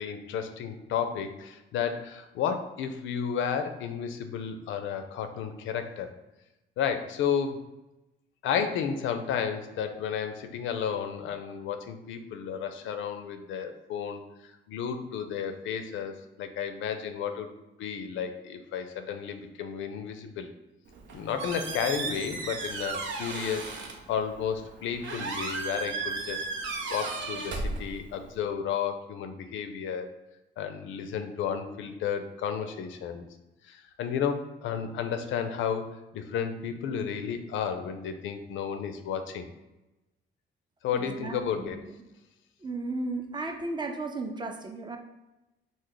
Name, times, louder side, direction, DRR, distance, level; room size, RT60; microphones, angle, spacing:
voice 1, 0.0-6.1 6.8-7.6 8.4-14.2 14.7-17.5 17.8-20.5 21.1-26.4 26.9-30.1 30.6-33.3 33.6-39.4 40.8-41.9, left 7 dB, 75° left, 7 dB, 0.4 m, -32 dB
Squeak, 20.9-28.4, right 3 dB, 70° right, 0.6 m, -35 dB
voice 2, 40.9-41.8 42.6-45.0, right 2 dB, 25° right, 5 dB, 0.4 m, -35 dB
3.2 x 2.1 x 3.7 m, 0.99 s
cardioid pair, 90°, 20 cm